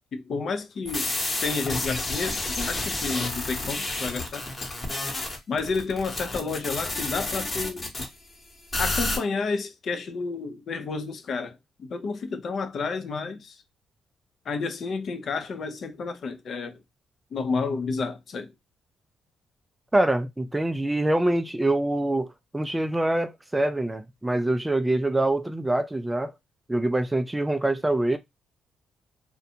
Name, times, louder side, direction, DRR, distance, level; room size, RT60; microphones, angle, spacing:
voice 1, 0.1-1.1 1.4-4.5 5.5-8.1 8.8-13.6 14.5-16.8 17.3-18.5, left 4 dB, 55° left, 0.5 m, -30 dB
sound 1, 0.9-8.1 8.7-9.2, left 2 dB, 30° left, 1.0 m, -30 dB
voice 2, 19.9-26.3 26.7-28.2, right 1 dB, 10° right, 0.3 m, -25 dB
2.5 x 2.2 x 2.7 m
cardioid pair, 90°, 0 cm